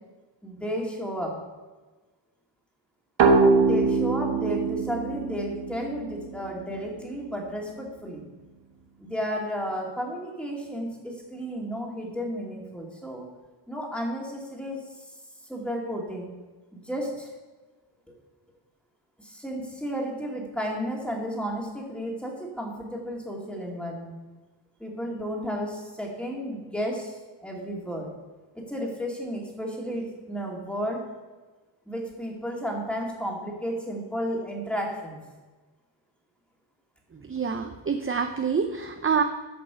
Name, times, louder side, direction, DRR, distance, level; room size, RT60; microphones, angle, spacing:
voice 1, 0.4-1.4 3.5-8.2 9.0-13.2 13.7-15.0 15.5-16.3 16.7-17.3 19.2-24.1 24.8-28.1 28.5-31.1 31.9-35.2, equal, ahead, -1 dB, 2.4 m, -33 dB
sound 1, 3.2-6.7, right 4 dB, 70° right, 1.3 m, -23 dB
voice 2, 37.3-39.2, right 6 dB, 30° right, 6 dB, 0.6 m, -26 dB
11.0 x 6.0 x 6.9 m, 1.2 s
wide cardioid pair, 115°, 47 cm